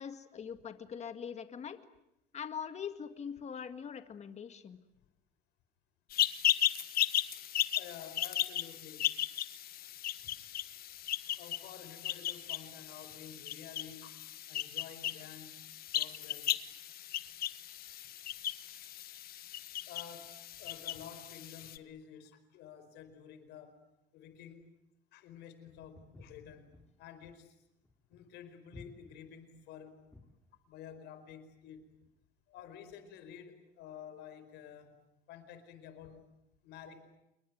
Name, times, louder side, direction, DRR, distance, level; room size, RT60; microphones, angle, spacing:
voice 1, 0.0-1.8 2.3-4.8, left 7 dB, 40° left, 9 dB, 1.9 m, -42 dB
sound 1, 6.1-21.8, left 12 dB, 65° left, 1.2 m, -36 dB
voice 2, 7.7-9.1 10.2-10.3 11.3-15.6 15.9-16.6 19.6-23.8 24.1-24.7 25.1-27.6 28.1-30.0 30.7-31.9 32.5-36.3 36.6-37.1, left 8 dB, 85° left, 10 dB, 4.6 m, -51 dB
Walk footsteps, 25.9-30.4, left 2 dB, 10° left, 5.4 m, -55 dB
28.0 x 22.5 x 9.4 m, 0.85 s
cardioid pair, 110°, 17 cm